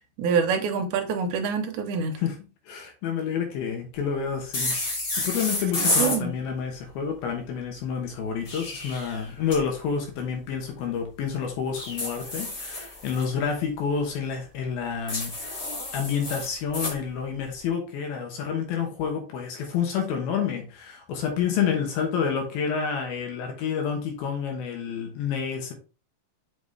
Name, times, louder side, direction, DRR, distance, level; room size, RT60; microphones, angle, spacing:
voice 1, 0.2-2.2 6.0-6.3, right 5 dB, 75° right, 1.9 m, -26 dB
voice 2, 2.7-4.8 5.2-15.3 15.9-25.7, left 7 dB, 85° left, 3.0 m, -29 dB
sound 1, 4.5-6.2 8.2-9.6 11.7-13.3 15.1-17.0, left 2 dB, 35° left, 2.2 m, -30 dB
5.9 x 5.5 x 3.2 m
omnidirectional pair, 4.2 m